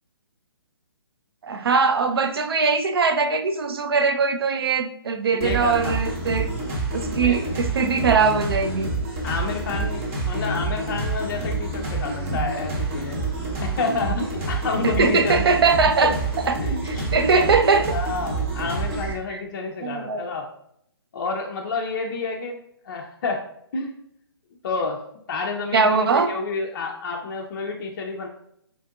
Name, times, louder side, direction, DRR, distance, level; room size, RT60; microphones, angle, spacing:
voice 1, 1.4-6.5 6.9-8.9 14.8-16.1 16.5-16.6 16.9-18.0 19.3-19.4 19.8-20.3 25.7-26.3, right 4 dB, 65° right, 8 dB, 0.4 m, -21 dB
voice 2, 5.3-6.0 7.2-7.4 9.2-13.2 13.6-15.4 16.0-16.1 16.6-17.1 17.9-20.5 21.1-22.6 22.8-23.4 23.7-24.0 24.6-25.0 25.3-28.3, left 4 dB, 50° left, 1 dB, 0.4 m, -29 dB
sound 1, 5.4-19.1, right 3 dB, 30° right, 0.7 m, -28 dB
3.7 x 2.5 x 2.3 m, 0.71 s
figure-of-eight pair, 135°, 13 cm